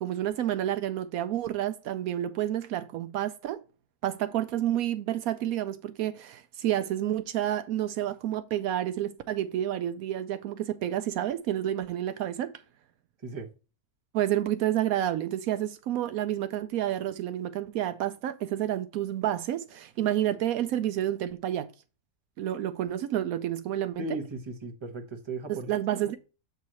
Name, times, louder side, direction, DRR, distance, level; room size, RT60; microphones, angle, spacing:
voice 1, 0.0-3.6 4.0-12.5 14.1-21.7 22.4-24.0 25.5-26.2, right 12 dB, 75° right, 1.0 m, -29 dB
voice 2, 24.0-25.7, right 2 dB, 20° right, 1.0 m, -36 dB
7.9 x 2.8 x 6.1 m
omnidirectional pair, 1.5 m